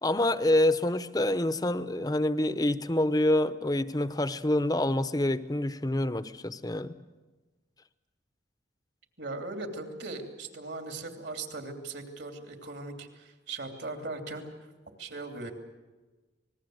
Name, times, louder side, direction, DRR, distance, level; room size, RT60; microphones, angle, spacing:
voice 1, 0.0-6.9, left 1 dB, 20° left, 13 dB, 0.8 m, -27 dB
voice 2, 9.2-14.5 15.0-15.5, right 3 dB, 65° right, 5 dB, 3.1 m, -39 dB
26.5 x 20.0 x 7.9 m, 1.2 s
head